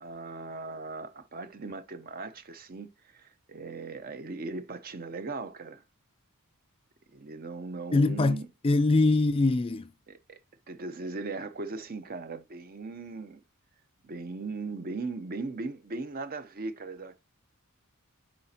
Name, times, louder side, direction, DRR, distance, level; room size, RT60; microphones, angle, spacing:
voice 1, 0.0-5.8 7.1-8.5 10.1-10.4 10.7-13.4 14.0-17.2, right 3 dB, 40° right, 0.7 m, -38 dB
voice 2, 7.9-9.9, left 2 dB, 25° left, 0.4 m, -23 dB
7.4 x 5.0 x 2.8 m
head